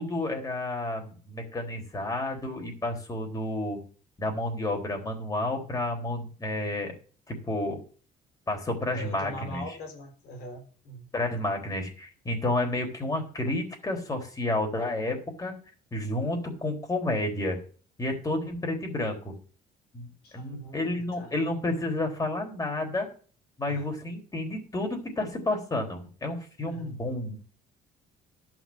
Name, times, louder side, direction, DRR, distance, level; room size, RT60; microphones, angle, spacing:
voice 1, 0.0-3.8 4.2-6.9 7.3-7.8 8.5-9.8 11.1-15.5 15.9-17.6 18.0-19.3 19.9-23.1 23.6-27.4, left 2 dB, 20° left, 3 dB, 3.8 m, -30 dB
voice 2, 8.8-11.1 20.2-21.3 23.7-23.8 26.6-27.0, left 1 dB, 70° left, 4 dB, 3.7 m, -42 dB
11.5 x 6.2 x 6.3 m, 0.41 s
cardioid pair, 110°, 17 cm